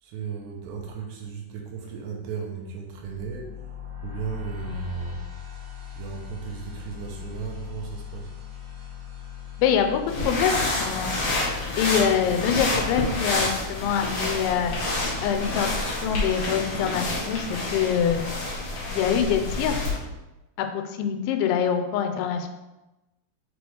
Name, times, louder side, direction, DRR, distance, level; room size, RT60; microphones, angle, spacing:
voice 1, 0.0-3.6 4.0-5.2 6.0-8.3, right 6 dB, 75° right, 0 dB, 2.8 m, -35 dB
sound 1, 2.9-16.0, left 9 dB, 50° right, 2.4 m, -40 dB
voice 2, 9.6-10.0 10.3-11.1 11.8-14.7 15.2-18.2 18.9-19.9 20.6-22.5, left 8 dB, 85° left, 6 dB, 2.9 m, -25 dB
sound 2, 10.1-20.0, left 2 dB, 65° left, 1.3 m, -28 dB
7.7 x 4.6 x 3.4 m, 1.0 s
omnidirectional pair, 5.4 m